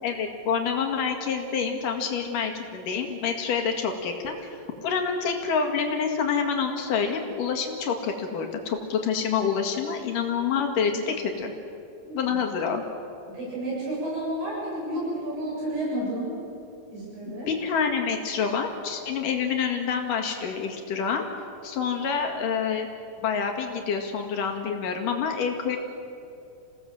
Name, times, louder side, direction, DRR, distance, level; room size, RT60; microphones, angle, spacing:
voice 1, 0.0-4.5 4.8-11.5 12.1-12.8 17.3-21.3 21.6-22.9 23.2-25.8, left 6 dB, 70° left, 3 dB, 3.6 m, -27 dB
voice 2, 12.1-12.4 13.3-16.4 16.9-17.5, right 1 dB, 85° right, -5 dB, 9.3 m, -31 dB
27.5 x 17.0 x 7.8 m, 2.7 s
omnidirectional pair, 3.9 m